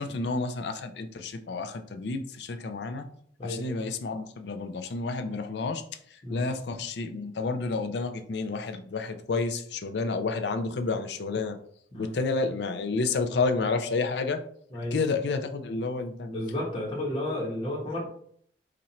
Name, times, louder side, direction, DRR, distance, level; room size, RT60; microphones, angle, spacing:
voice 1, 0.0-3.1 3.4-5.8 6.1-11.6 12.0-14.4 14.9-16.3, left 3 dB, 70° left, 8 dB, 0.5 m, -30 dB
voice 2, 16.2-18.0, left 1 dB, 30° left, -4 dB, 1.2 m, -32 dB
4.3 x 2.5 x 4.1 m, 0.63 s
head